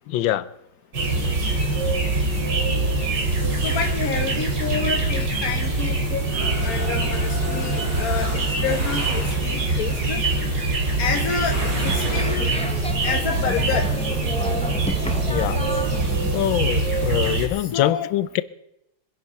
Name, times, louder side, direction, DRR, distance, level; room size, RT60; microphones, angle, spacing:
voice 1, 0.1-0.5 15.3-15.6 16.3-18.4, left 13 dB, 70° left, 1.4 m, -23 dB
sound 1, 0.9-17.5, right 2 dB, 55° right, 3.4 m, -24 dB
voice 2, 3.6-6.2 6.6-10.2 11.0-12.5 13.0-13.9 17.7-18.1, left 6 dB, 55° left, 1.2 m, -28 dB
sound 2, 5.0-9.8 11.3-12.5, right 1 dB, 25° right, 3.3 m, -34 dB
sound 3, 11.0-16.4, equal, 5° left, 0.5 m, -32 dB
24.5 x 10.5 x 5.5 m
omnidirectional pair, 2.3 m